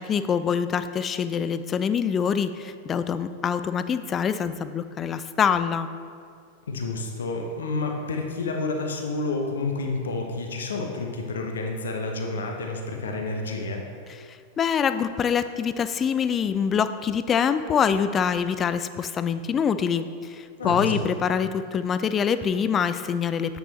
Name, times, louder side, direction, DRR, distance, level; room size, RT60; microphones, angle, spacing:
voice 1, 0.0-5.9 14.6-23.6, left 7 dB, 25° left, 12 dB, 0.3 m, -25 dB
voice 2, 6.7-13.8 20.6-21.1, left 3 dB, 65° left, 2 dB, 0.7 m, -29 dB
7.9 x 7.0 x 3.0 m, 2.2 s
figure-of-eight pair, 90°, 0 cm